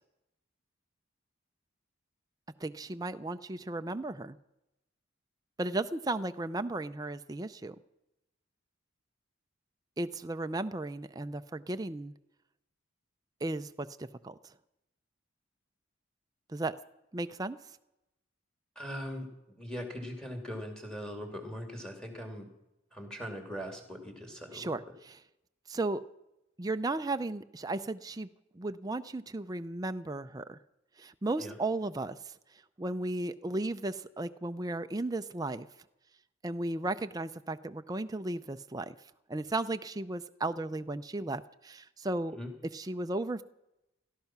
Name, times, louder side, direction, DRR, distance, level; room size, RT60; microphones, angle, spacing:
voice 1, 2.6-4.4 5.6-7.8 10.0-12.1 13.4-14.5 16.5-16.7 17.1-17.6 24.5-25.2 25.7-26.0 26.6-28.3 28.5-30.6 31.0-32.3 32.8-35.7 36.4-39.0 39.3-42.4 42.7-43.4, right 2 dB, 20° right, 9 dB, 0.4 m, -35 dB
voice 2, 18.8-19.3 19.6-22.5 22.9-24.7 31.4-31.5 42.3-42.5, equal, 5° left, 4 dB, 2.5 m, -40 dB
17.0 x 13.0 x 6.0 m, 0.89 s
head